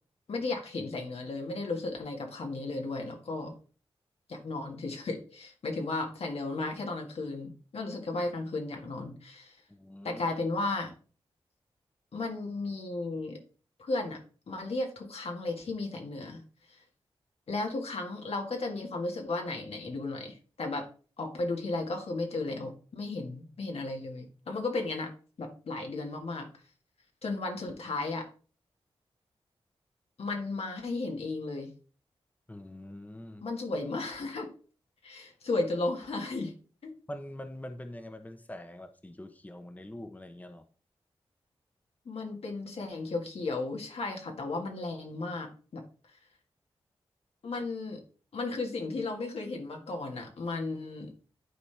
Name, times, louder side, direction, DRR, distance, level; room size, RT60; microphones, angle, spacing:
voice 1, 0.3-3.5 4.3-9.6 10.0-10.9 12.1-13.4 13.8-14.2 14.5-16.4 16.7-16.8 17.5-20.8 21.2-25.1 25.4-26.5 27.2-28.3 30.2-31.7 33.4-34.5 35.0-36.5 36.8-36.9 42.1-45.8 47.4-48.0 48.3-51.1, left 3 dB, 75° left, 2 dB, 1.8 m, -34 dB
voice 2, 9.7-10.2 32.5-33.5 37.1-40.6, left 1 dB, 15° left, 7 dB, 1.0 m, -44 dB
11.0 x 4.2 x 3.4 m, 0.38 s
cardioid pair, 50°, 10 cm